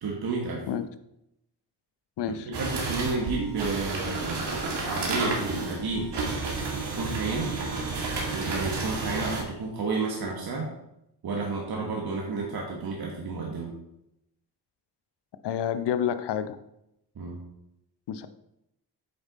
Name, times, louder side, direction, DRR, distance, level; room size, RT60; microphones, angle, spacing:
voice 1, 0.0-0.6 2.5-6.1 6.9-7.5 8.3-10.7 11.2-13.7 17.1-17.4, right 3 dB, 65° right, -1 dB, 1.6 m, -31 dB
voice 2, 2.2-2.5 15.4-16.6 18.1-18.3, left 9 dB, 80° left, 11 dB, 0.8 m, -29 dB
sound 1, 2.5-9.4, right 3 dB, 80° right, 2.1 m, -31 dB
8.7 x 5.5 x 4.1 m, 0.82 s
cardioid pair, 85°, 40 cm